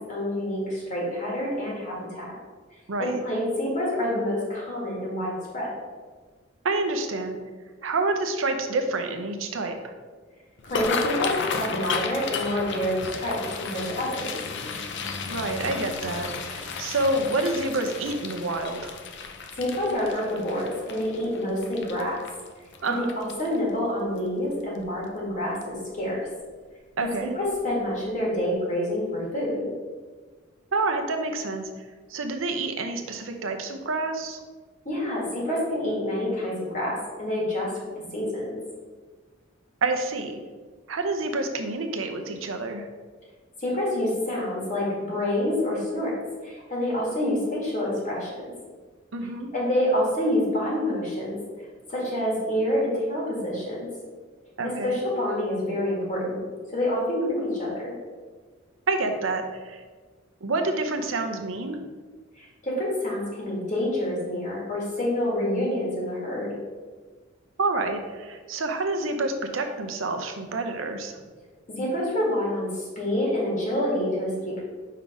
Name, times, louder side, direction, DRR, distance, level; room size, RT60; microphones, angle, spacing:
voice 1, 0.1-2.3 3.0-5.7 10.7-14.3 19.6-22.2 22.9-26.2 27.0-29.7 34.9-37.7 38.1-38.6 43.6-46.1 46.4-48.3 49.5-51.4 51.9-53.9 54.6-56.4 56.7-57.9 62.4-66.5 71.7-74.6, left 1 dB, 40° left, -5 dB, 1.9 m, -27 dB
voice 2, 2.9-3.2 6.6-7.4 7.8-9.8 15.3-19.0 22.8-23.1 27.0-27.3 30.7-31.8 32.1-34.4 39.8-40.4 40.9-42.9 49.1-49.5 54.6-55.0 58.9-59.8 60.4-61.8 67.6-71.2, right 2 dB, 80° right, 6 dB, 0.7 m, -28 dB
sound 1, 10.6-23.7 24.2-24.5 24.8-25.2 25.6-25.8 27.0-27.2 27.5-27.7 28.1-28.2, left 5 dB, 60° left, 0.6 m, -33 dB
5.5 x 3.9 x 4.8 m, 1.4 s
head